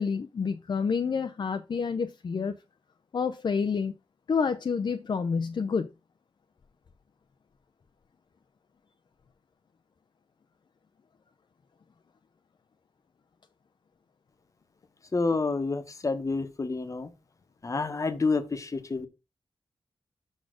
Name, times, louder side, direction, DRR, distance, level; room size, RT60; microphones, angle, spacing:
voice 1, 0.0-2.6 3.1-3.9 4.3-5.9, left 5 dB, 50° left, 0.5 m, -28 dB
voice 2, 15.1-17.1 17.6-19.1, left 3 dB, 35° left, 1.1 m, -29 dB
6.1 x 4.1 x 6.2 m
wide cardioid pair, 105°, 10 cm